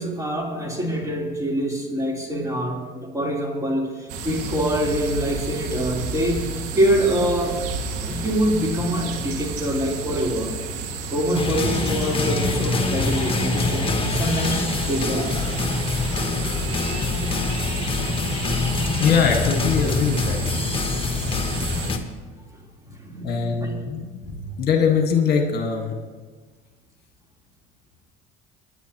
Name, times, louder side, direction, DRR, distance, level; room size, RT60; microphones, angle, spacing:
voice 1, 0.0-7.6 8.0-10.5 11.1-15.4 22.8-23.8 24.2-24.3, right 1 dB, 15° right, -2 dB, 3.7 m, -25 dB
sound 1, 4.1-21.9, right 4 dB, 80° right, 2.1 m, -32 dB
sound 2, 11.3-22.0, left 3 dB, 25° left, 1.6 m, -25 dB
voice 2, 19.0-20.4 23.2-24.1 24.6-25.9, left 6 dB, 50° left, 3 dB, 1.8 m, -21 dB
25.5 x 10.0 x 3.0 m, 1.4 s
supercardioid pair, 85°, 21 cm